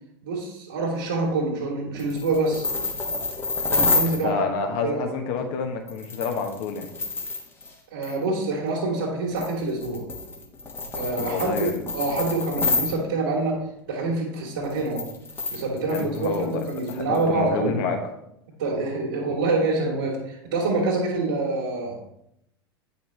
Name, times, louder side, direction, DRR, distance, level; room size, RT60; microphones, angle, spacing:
voice 1, 0.2-2.6 3.7-4.4 4.8-5.2 7.9-10.0 10.9-13.6 13.9-15.0 15.5-17.8 18.6-22.0, right 3 dB, 60° right, -5 dB, 1.8 m, -26 dB
sound 1, 1.9-4.2 5.9-7.7 8.0-8.2 9.3-12.9 14.6-17.2, left 3 dB, 15° left, 1.1 m, -28 dB
voice 2, 4.1-6.9 11.2-11.8 15.9-18.0 19.2-19.4, left 5 dB, 45° left, 5 dB, 1.1 m, -29 dB
8.8 x 5.4 x 3.3 m, 0.79 s
figure-of-eight pair, 85°, 13 cm